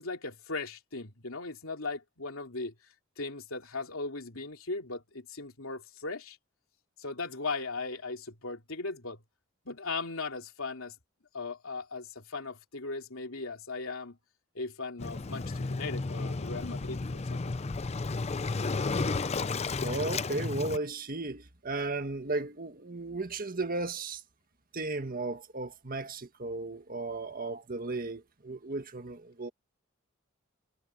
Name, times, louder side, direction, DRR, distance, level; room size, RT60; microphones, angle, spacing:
voice 1, 0.0-2.7 3.2-6.4 7.0-9.2 9.6-10.9 11.3-14.2 14.5-17.5, left 3 dB, 80° left, 3.1 m, -38 dB
Waves surf, 15.0-20.8, left 3 dB, 30° left, 0.5 m, -33 dB
voice 2, 19.8-24.2 24.7-29.5, right 3 dB, 45° right, 1.6 m, -35 dB
head